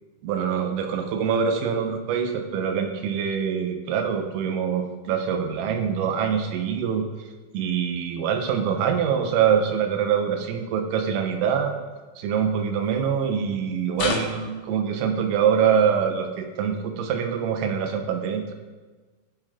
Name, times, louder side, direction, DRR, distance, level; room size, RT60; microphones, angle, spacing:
voice 1, 0.2-7.1 7.5-11.7 12.2-18.5, right 7 dB, 80° right, 4 dB, 3.8 m, -24 dB
sound 1, 14.0-14.6 17.8-17.9, left 5 dB, 75° left, 3.9 m, -28 dB
20.5 x 7.2 x 3.7 m, 1.3 s
omnidirectional pair, 5.9 m